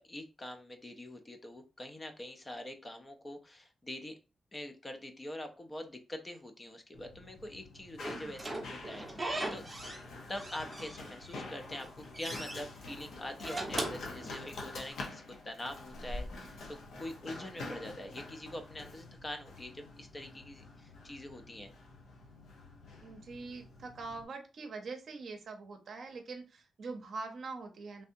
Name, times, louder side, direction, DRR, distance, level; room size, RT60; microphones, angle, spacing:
voice 1, 0.0-4.2 4.5-9.6 10.3-21.7, left 1 dB, 20° left, 6 dB, 0.5 m, -44 dB
Run, 6.9-24.2, left 2 dB, 85° left, 0.7 m, -47 dB
Slam / Squeak, 8.0-10.1 10.4-11.3 11.7-12.6 13.3-14.8, right 2 dB, 15° right, 0.7 m, -39 dB
voice 2, 23.0-28.0, right 3 dB, 60° right, 4 dB, 0.7 m, -43 dB
3.3 x 2.7 x 2.6 m, 0.31 s
wide cardioid pair, 135°, 0 cm